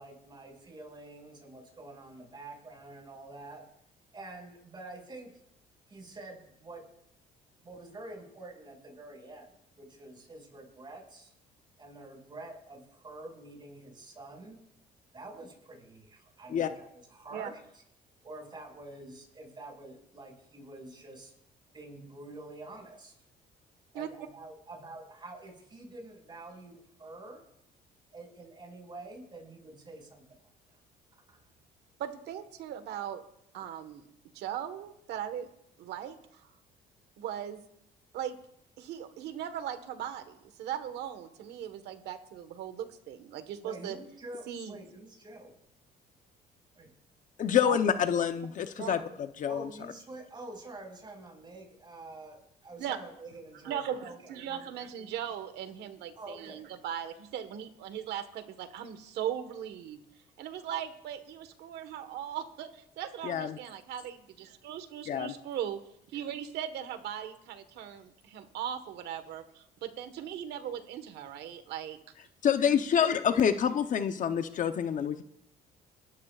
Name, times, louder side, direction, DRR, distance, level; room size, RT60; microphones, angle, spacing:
voice 1, 0.0-3.7 4.1-5.4 5.9-6.9 7.6-11.3 11.8-14.6 15.1-17.6 18.2-21.3 21.7-23.2 23.9-27.4 28.1-30.8 31.3-31.4 43.6-45.5 46.7-46.9 49.5-54.7 55.0-55.1 56.2-56.7, right 2 dB, 25° right, 1 dB, 5.8 m, -47 dB
voice 2, 32.0-33.2 33.5-34.0 34.3-35.5 35.8-36.2 37.2-37.6 38.1-38.3 38.8-44.0 44.5-44.7 47.6-47.8 48.5-49.0 52.8-53.0 53.6-60.0 60.4-65.8 66.1-72.0 73.0-73.2 74.3-74.4, right 10 dB, 80° right, 9 dB, 1.5 m, -38 dB
voice 3, 47.4-49.0 49.4-49.7 63.2-63.6 65.1-65.3 72.4-75.2, left 8 dB, 50° left, 8 dB, 0.9 m, -27 dB
28.0 x 13.5 x 2.5 m, 0.76 s
cardioid pair, 110°, 17 cm